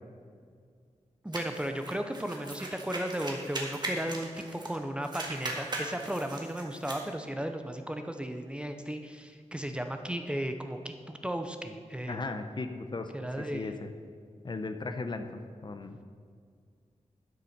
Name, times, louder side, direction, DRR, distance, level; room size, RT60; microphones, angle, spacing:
voice 1, 1.2-12.2 13.1-13.7, right 1 dB, 10° right, 6 dB, 0.6 m, -35 dB
sound 1, 1.3-4.8 5.0-7.0, right 2 dB, 35° right, 1.8 m, -39 dB
voice 2, 12.1-13.1 13.4-13.9 14.4-16.0, left 3 dB, 40° left, 7 dB, 0.7 m, -37 dB
12.0 x 6.7 x 5.9 m, 2.1 s
wide cardioid pair, 145°, 12 cm